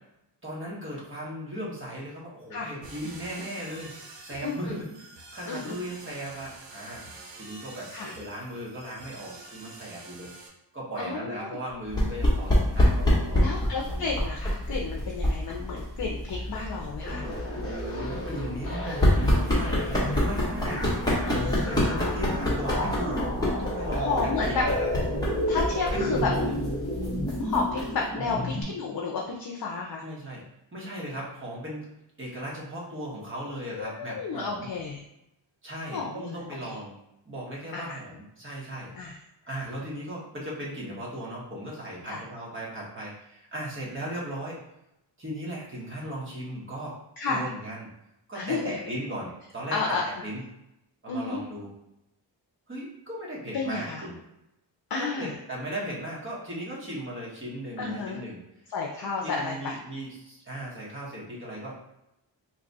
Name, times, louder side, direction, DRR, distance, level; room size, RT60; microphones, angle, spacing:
voice 1, 0.4-7.1 7.3-10.3 10.7-14.2 17.2-23.3 23.6-24.9 25.9-26.6 28.2-28.4 30.0-30.4 30.7-31.9 32.2-34.7 35.6-36.9 37.2-39.2 39.4-44.6 45.2-47.0 47.3-47.9 48.3-50.4 51.0-51.7 52.7-54.2 55.0-58.4 59.0-61.8, right 1 dB, 25° right, -5 dB, 1.3 m, -37 dB
sound 1, 2.8-10.5, right 3 dB, 70° right, 0.9 m, -47 dB
voice 2, 11.0-11.6 13.4-17.2 18.8-19.0 21.3-21.7 24.0-24.6 25.5-26.3 27.4-30.0 33.7-35.0 35.9-36.4 36.7-36.8 37.7-38.0 38.9-39.2 42.1-42.2 47.2-47.5 48.3-48.8 49.7-50.0 51.1-51.4 53.5-54.0 54.9-55.3 57.8-58.2 58.7-59.8, left 4 dB, 55° left, -1 dB, 0.6 m, -31 dB
sound 2, 11.9-28.0, left 1 dB, 10° left, 1.1 m, -27 dB
sound 3, 17.0-28.6, left 1 dB, 30° left, 1.0 m, -32 dB
3.0 x 2.4 x 4.0 m, 0.87 s
wide cardioid pair, 105°, 45 cm